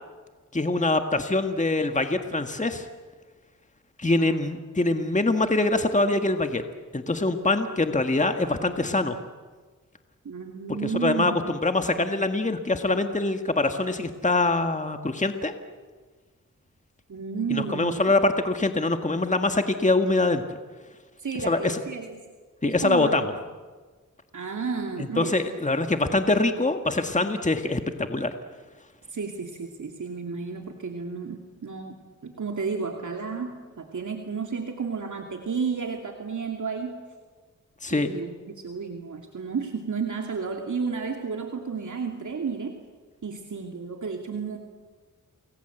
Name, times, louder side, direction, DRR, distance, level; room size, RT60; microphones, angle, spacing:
voice 1, 0.5-2.8 4.0-6.6 6.9-9.2 10.8-15.5 17.5-20.6 21.4-21.8 22.6-23.2 25.0-28.3 37.8-38.1, left 2 dB, 20° left, 6 dB, 1.7 m, -24 dB
voice 2, 4.1-4.4 10.2-11.4 17.1-18.1 21.2-22.2 22.6-23.3 24.3-25.4 29.1-37.0 37.9-42.8 43.2-44.6, right 5 dB, 65° right, 2 dB, 2.7 m, -32 dB
29.0 x 21.5 x 8.0 m, 1.4 s
cardioid pair, 60°, 33 cm